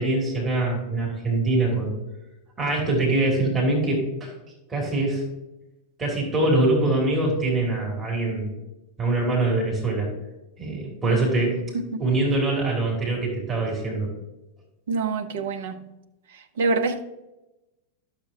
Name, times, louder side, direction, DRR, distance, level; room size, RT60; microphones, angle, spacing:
voice 1, 0.0-1.9 2.6-4.3 4.7-5.3 6.0-8.5 9.0-10.1 10.6-11.6 12.0-14.1, right 2 dB, 20° right, 2.6 m, -23 dB
voice 2, 14.9-15.8 16.6-17.0, right 3 dB, 60° right, 0.7 m, -25 dB
12.0 x 6.7 x 2.8 m
figure-of-eight pair, 90°, 0 cm